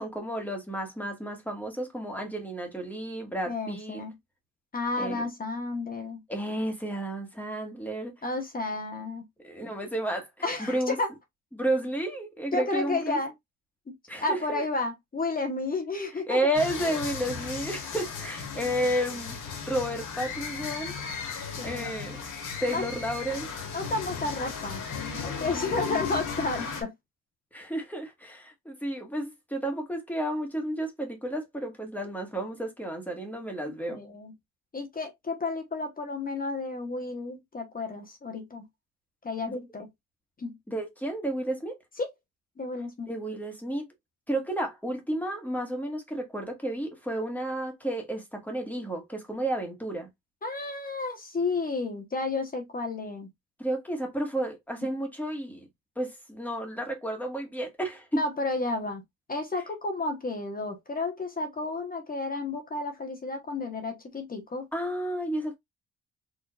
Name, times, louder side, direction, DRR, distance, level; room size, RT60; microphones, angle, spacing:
voice 1, 0.0-4.0 5.0-5.2 6.3-8.1 9.4-10.3 10.6-11.0 11.5-13.2 14.1-14.6 16.3-19.4 19.7-20.9 21.6-22.2 22.6-23.5 27.5-34.0 39.5-39.6 40.7-41.7 43.1-43.9 44.3-50.1 53.6-55.7 56.0-58.2 64.7-65.6, right 1 dB, 5° left, 1.5 m, -31 dB
voice 2, 3.5-4.1 4.7-6.2 8.2-9.2 10.4-11.1 12.5-13.3 13.9-14.0 14.2-16.4 21.6-21.9 22.7-22.8 23.7-24.8 25.2-26.9 33.6-34.3 34.7-38.6 39.2-39.9 40.4-40.5 42.0-42.1 42.6-43.1 50.4-53.3 58.1-59.0 59.3-64.7, left 3 dB, 30° left, 1.0 m, -32 dB
sound 1, 16.5-26.8, left 5 dB, 85° left, 1.6 m, -36 dB
4.8 x 2.7 x 2.3 m
cardioid pair, 90°, 30 cm